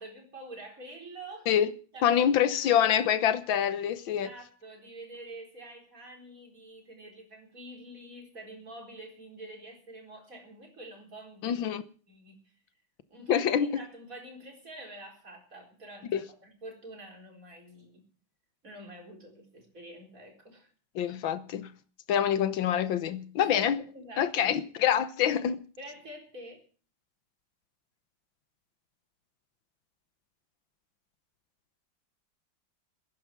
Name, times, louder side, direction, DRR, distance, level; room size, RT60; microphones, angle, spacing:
voice 1, 0.0-1.5 1.9-2.2 2.6-3.0 4.1-11.7 12.1-12.4 13.1-18.0 18.6-20.7 23.4-24.6 25.8-26.6, right 1 dB, 45° right, 4.6 m, -47 dB
voice 2, 2.0-4.3 11.4-11.8 13.3-13.7 16.1-16.2 20.9-21.7 22.1-23.8 24.2-25.6, left 9 dB, 85° left, 1.8 m, -26 dB
20.0 x 10.5 x 6.0 m
omnidirectional pair, 2.1 m